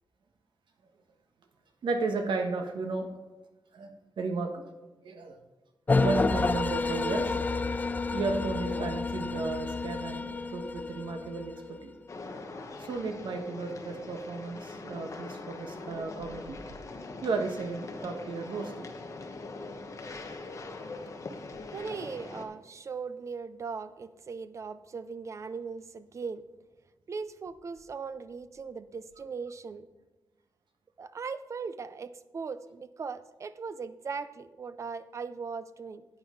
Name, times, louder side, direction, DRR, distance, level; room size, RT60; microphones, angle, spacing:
voice 1, 1.8-3.1 3.7-4.6 5.0-5.4 6.0-7.4 7.9-11.9 12.8-16.6 17.2-18.9, right 3 dB, 75° right, 4 dB, 1.4 m, -34 dB
sound 1, 5.9-11.9, left 4 dB, 20° left, 0.3 m, -30 dB
sound 2, 12.1-22.4, left 3 dB, 40° left, 1.1 m, -42 dB
voice 2, 21.7-26.5 27.1-29.9 31.0-36.1, right 5 dB, 40° right, 13 dB, 0.5 m, -39 dB
10.5 x 9.0 x 3.8 m, 1.1 s
wide cardioid pair, 165°, 8 cm